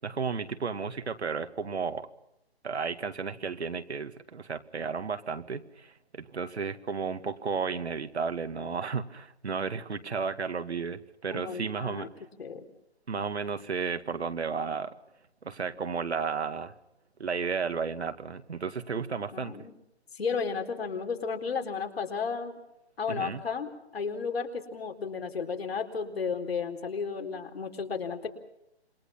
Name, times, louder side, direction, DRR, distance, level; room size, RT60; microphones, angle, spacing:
voice 1, 0.0-2.1 2.6-12.1 13.1-14.9 15.4-16.7 17.2-19.6 23.1-23.4, right 5 dB, 75° right, 8 dB, 2.2 m, -33 dB
voice 2, 11.3-12.1 12.4-12.6 19.3-19.7 20.1-22.6 23.0-28.3, left 5 dB, 65° left, 5 dB, 4.2 m, -33 dB
27.5 x 23.0 x 5.8 m, 0.84 s
hypercardioid pair, 155°, 33 cm